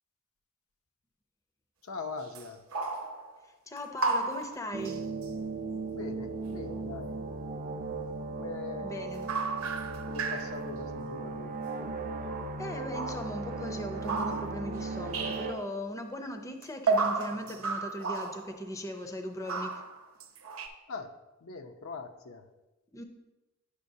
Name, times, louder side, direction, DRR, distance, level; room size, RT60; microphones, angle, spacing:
voice 1, 1.8-2.6 5.9-7.2 8.3-8.9 10.1-11.6 20.9-21.2 21.4-22.5, left 4 dB, 80° left, 6 dB, 0.6 m, -41 dB
sound 1, 2.3-2.5 2.7-3.4 3.8-5.3 9.1-10.7 12.2-12.6 12.9-14.8 15.1-15.6 16.6-18.6 19.4-20.7, right 4 dB, 80° right, 0.8 m, -33 dB
voice 2, 3.7-5.1 8.8-9.3 12.6-19.7 22.9-23.0, equal, 15° left, 5 dB, 0.5 m, -39 dB
sound 2, 4.7-15.5, right 3 dB, 40° right, 0.5 m, -37 dB
8.5 x 6.7 x 2.7 m, 1.0 s
head